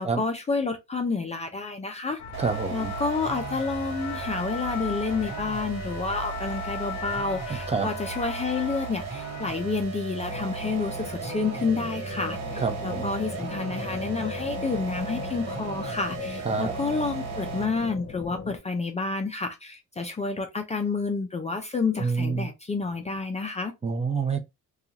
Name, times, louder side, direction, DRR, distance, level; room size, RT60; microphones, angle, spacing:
voice 1, 0.0-2.2 2.7-23.7, left 4 dB, 20° left, 0.4 m, -29 dB
sound 1, 2.2-9.8, left 8 dB, 75° left, 0.5 m, -39 dB
sound 2, 2.3-17.8, right 6 dB, 60° right, 1.0 m, -36 dB
voice 2, 2.4-2.9 7.7-7.9 12.6-13.1 16.4-16.7 22.0-22.5 23.8-24.4, right 4 dB, 20° right, 0.6 m, -27 dB
sound 3, 10.3-18.6, left 5 dB, 40° left, 0.8 m, -38 dB
2.5 x 2.4 x 2.7 m
cardioid pair, 90°, 30 cm